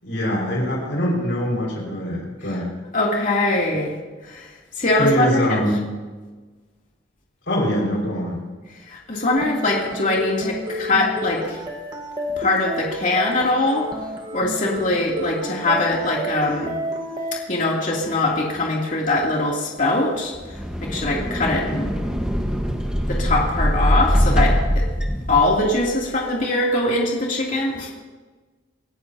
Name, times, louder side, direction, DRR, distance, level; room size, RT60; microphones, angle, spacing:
voice 1, 0.0-2.7 5.0-5.9 7.5-8.4, equal, 70° left, -2 dB, 5.7 m, -23 dB
voice 2, 2.9-3.9 4.3-4.4 4.8-5.6 8.9-11.6 12.4-13.9 14.3-16.7 17.5-20.3 20.8-21.9 23.1-24.8 25.3-27.9, left 2 dB, 45° left, -3 dB, 3.0 m, -22 dB
sound 1, 9.4-17.4, equal, 25° right, 1.5 m, -31 dB
sound 2, 20.3-25.9, equal, 5° right, 1.4 m, -22 dB
26.5 x 14.5 x 2.9 m, 1.3 s
head